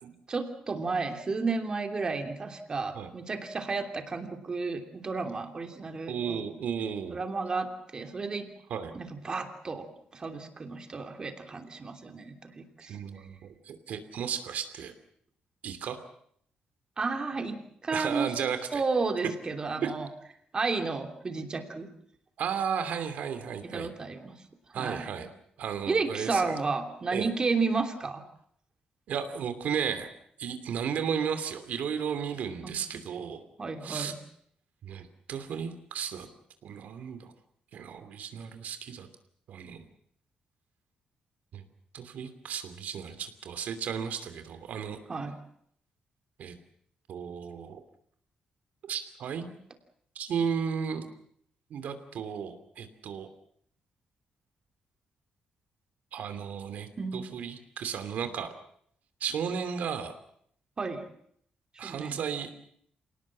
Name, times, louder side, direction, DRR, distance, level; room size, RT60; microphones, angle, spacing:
voice 1, 0.3-6.4 7.1-8.5 8.9-9.9 10.1-13.0 17.0-18.3 18.7-20.1 20.5-21.9 23.6-24.4 24.7-25.1 25.9-28.2 32.6-33.0 33.6-34.2 45.1-45.4 49.4-49.5 57.0-57.2 60.8-61.0 61.8-62.2, right 4 dB, 30° right, 5 dB, 3.0 m, -32 dB
voice 2, 6.1-7.2 8.7-8.9 12.8-14.9 15.6-16.0 17.9-18.8 19.8-19.9 22.4-23.9 24.7-25.3 25.6-26.6 27.1-27.3 29.1-30.1 30.4-33.4 33.8-34.1 34.8-36.3 36.6-37.3 37.7-39.1 39.5-39.9 41.5-41.6 41.9-45.0 46.4-46.5 47.1-47.8 48.8-49.4 50.1-51.0 51.7-53.3 56.1-58.5 59.2-60.1 61.8-62.5, right 7 dB, 70° right, 9 dB, 2.8 m, -34 dB
27.0 x 18.5 x 7.5 m, 0.68 s
cardioid pair, 135°, 3 cm